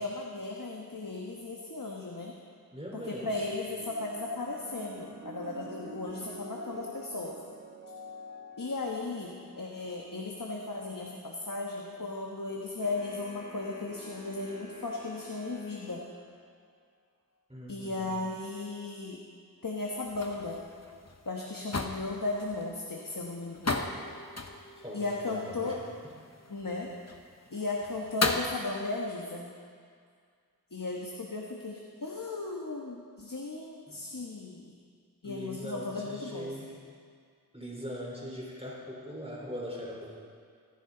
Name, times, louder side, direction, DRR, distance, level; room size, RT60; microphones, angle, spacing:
voice 1, 0.0-2.4 2.9-7.4 8.6-16.0 17.7-19.2 19.6-20.6 21.2-24.0 24.9-25.8 26.5-26.9 27.5-29.5 30.7-34.8 35.2-36.5, left 3 dB, 60° left, -1 dB, 1.4 m, -36 dB
voice 2, 2.7-3.4 17.5-18.1 24.8-25.8 33.9-34.0 35.2-36.8 37.5-40.1, equal, 15° right, -4 dB, 4.3 m, -41 dB
sound 1, 3.8-12.4 13.3-13.6, right 1 dB, 50° right, 1.7 m, -49 dB
sound 2, 12.8-16.1, left 1 dB, 25° left, 4.5 m, -49 dB
sound 3, 19.8-28.6, left 3 dB, 45° left, 1.0 m, -37 dB
24.0 x 10.5 x 3.9 m, 2.1 s
wide cardioid pair, 40°, 36 cm